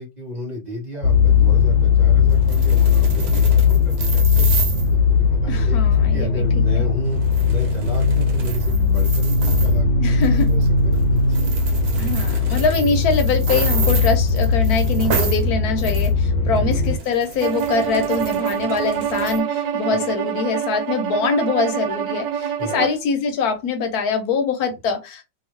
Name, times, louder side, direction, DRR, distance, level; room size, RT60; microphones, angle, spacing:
voice 1, 0.0-4.5 4.9-7.2 7.5-11.5 12.9-13.0 16.3-16.7 19.9-20.2 22.6-22.9 24.7-24.8, equal, 30° right, 1.0 m, -34 dB
sound 1, 1.0-17.0, left 5 dB, 85° left, 1.3 m, -18 dB
sound 2, 2.3-4.9 7.0-9.8 10.2-10.7 10.9-11.0 11.3-15.4 15.8-16.1 16.6-19.4, right 6 dB, 65° right, 1.2 m, -31 dB
voice 2, 5.5-6.4 6.7-6.8 10.0-10.5 12.0-25.3, left 4 dB, 65° left, 1.2 m, -23 dB
Bowed string instrument, 17.4-23.0, right 8 dB, 90° right, 1.3 m, -25 dB
2.8 x 2.6 x 3.0 m
omnidirectional pair, 1.9 m